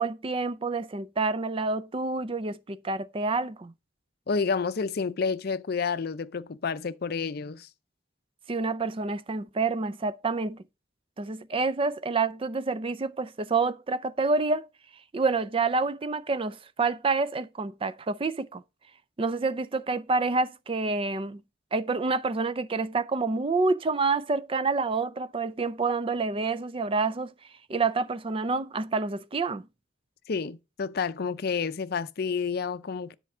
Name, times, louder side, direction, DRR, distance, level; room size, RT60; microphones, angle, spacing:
voice 1, 0.0-3.7 8.5-10.6 11.2-14.7 15.1-18.6 19.2-21.4 21.7-27.3 27.7-29.6, right 3 dB, 30° right, 0.5 m, -28 dB
voice 2, 4.3-7.7 30.3-33.2, left 5 dB, 55° left, 0.5 m, -30 dB
10.0 x 4.4 x 6.0 m
head